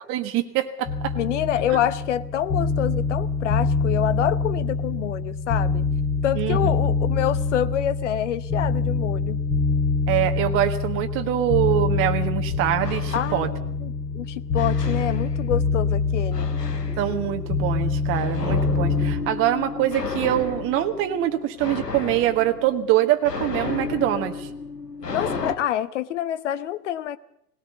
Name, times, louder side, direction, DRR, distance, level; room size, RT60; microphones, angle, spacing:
voice 1, 0.1-1.1 6.4-6.6 10.1-13.5 17.0-24.5, right 12 dB, 25° right, 6 dB, 1.4 m, -24 dB
sound 1, 0.9-19.1, left 4 dB, 25° left, 3.7 m, -25 dB
voice 2, 1.1-5.8 6.2-9.4 13.1-16.5 25.1-27.2, left 11 dB, 50° left, 17 dB, 1.0 m, -27 dB
sound 2, 12.8-14.0 14.6-15.8 16.3-25.6, left 4 dB, 85° left, 1.8 m, -33 dB
19.0 x 17.5 x 8.0 m, 0.75 s
figure-of-eight pair, 110°, 47 cm